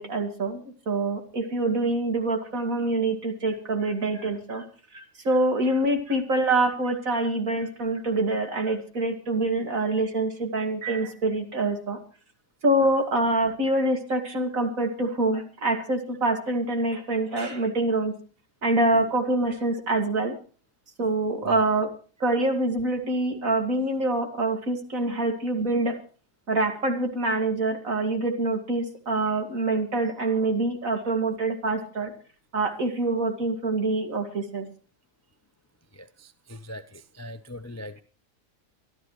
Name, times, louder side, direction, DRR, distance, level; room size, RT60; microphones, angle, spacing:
voice 1, 0.0-4.6 4.9-12.0 12.6-18.1 18.6-20.3 21.0-21.9 22.2-26.0 26.5-32.1 32.5-34.7, right 2 dB, 55° right, 5 dB, 2.8 m, -25 dB
voice 2, 35.9-38.0, left 1 dB, 20° left, 11 dB, 0.4 m, -41 dB
24.0 x 12.5 x 3.2 m, 0.38 s
omnidirectional pair, 1.7 m